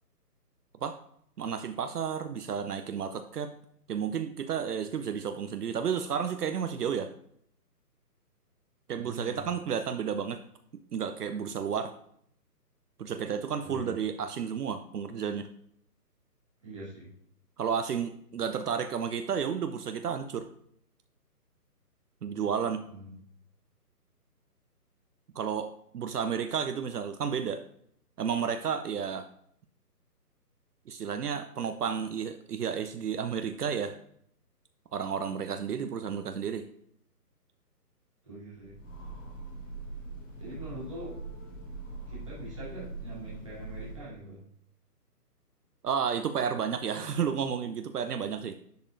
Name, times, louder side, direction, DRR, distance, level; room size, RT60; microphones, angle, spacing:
voice 1, 1.4-3.5 3.9-7.1 8.9-10.4 10.9-11.9 13.0-15.5 17.6-20.5 22.2-22.8 25.3-25.7 25.9-27.6 28.2-29.3 30.9-33.9 34.9-36.7 45.8-48.6, right 7 dB, 70° right, 9 dB, 0.6 m, -32 dB
voice 2, 8.9-9.4 13.6-13.9 16.6-17.1 22.9-23.1 38.2-38.7 40.4-41.1 42.1-44.4, right 1 dB, 20° right, -8 dB, 1.7 m, -43 dB
Train, 38.5-44.3, right 3 dB, 50° left, 2.1 m, -42 dB
10.5 x 4.1 x 2.5 m, 0.68 s
hypercardioid pair, 180°, 48 cm